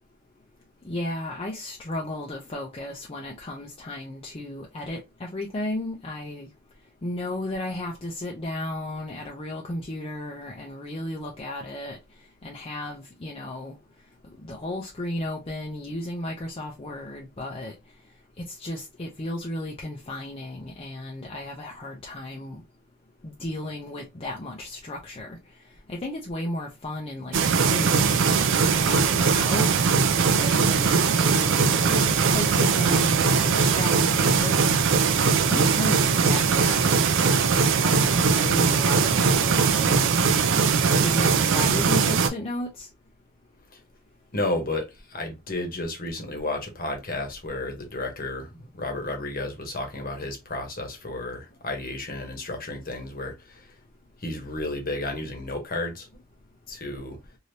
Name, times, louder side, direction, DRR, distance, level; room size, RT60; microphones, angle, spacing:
voice 1, 0.8-6.5 7.0-12.0 12.4-13.8 14.4-17.7 18.4-22.6 23.2-25.4 25.9-29.7 30.4-34.6 35.3-37.3 37.8-40.0 41.0-42.9, left 1 dB, 30° left, 0.5 m, -34 dB
sound 1, 27.3-42.3, right 5 dB, 60° right, 0.4 m, -21 dB
voice 2, 44.3-53.7 54.2-56.1 56.7-57.2, left 2 dB, 45° left, 1.0 m, -32 dB
3.2 x 2.7 x 2.7 m
head